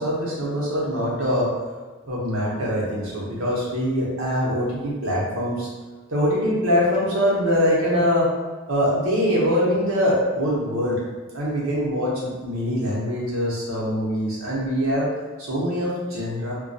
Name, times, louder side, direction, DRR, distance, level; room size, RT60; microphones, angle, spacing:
voice 1, 0.0-1.5 2.1-5.7 6.1-8.3 8.7-11.0 11.3-15.1 15.4-16.5, equal, 85° right, -5 dB, 0.8 m, -23 dB
2.3 x 2.2 x 2.6 m, 1.3 s
head